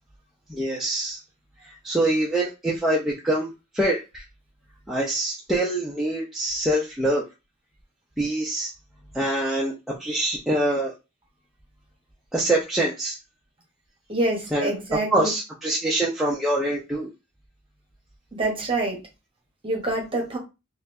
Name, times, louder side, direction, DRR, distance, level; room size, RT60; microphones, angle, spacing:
voice 1, 0.5-1.2 1.6-4.2 4.9-7.2 8.2-8.7 9.1-10.9 12.3-13.2 14.5-14.7 15.1-17.1, right 1 dB, ahead, -6 dB, 0.6 m, -25 dB
voice 2, 14.1-15.3 18.3-19.0 19.6-20.4, right 2 dB, 25° right, 1 dB, 1.1 m, -26 dB
4.0 x 2.5 x 2.7 m, 0.26 s
head